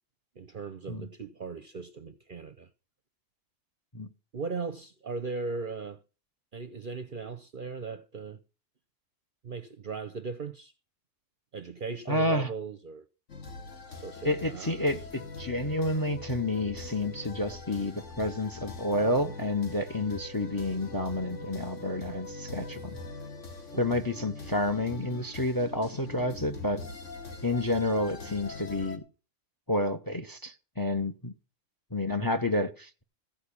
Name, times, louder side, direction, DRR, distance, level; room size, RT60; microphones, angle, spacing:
voice 1, 0.4-2.7 4.3-6.0 6.5-8.4 9.4-10.7 11.5-13.1 14.0-14.8 23.9-24.1, right 4 dB, 50° right, 0.7 m, -38 dB
voice 2, 12.1-12.5 14.2-23.0 23.8-26.8 27.4-29.0 29.7-31.3 31.9-33.0, left 1 dB, 20° left, 0.7 m, -30 dB
sound 1, 13.3-29.0, left 3 dB, 65° left, 2.0 m, -42 dB
15.5 x 5.2 x 8.4 m
omnidirectional pair, 1.4 m